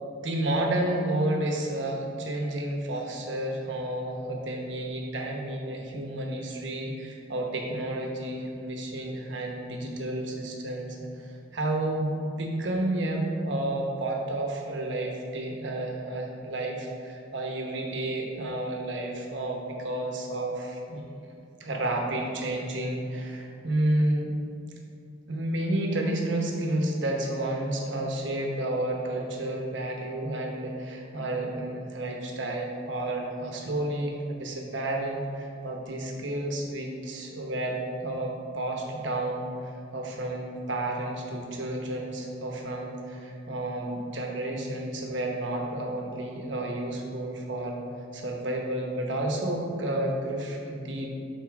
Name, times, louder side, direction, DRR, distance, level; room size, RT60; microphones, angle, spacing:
voice 1, 0.2-21.3 21.6-24.4 25.3-47.8 48.1-51.1, right 1 dB, 70° right, 1 dB, 1.1 m, -31 dB
7.1 x 4.3 x 4.7 m, 2.5 s
head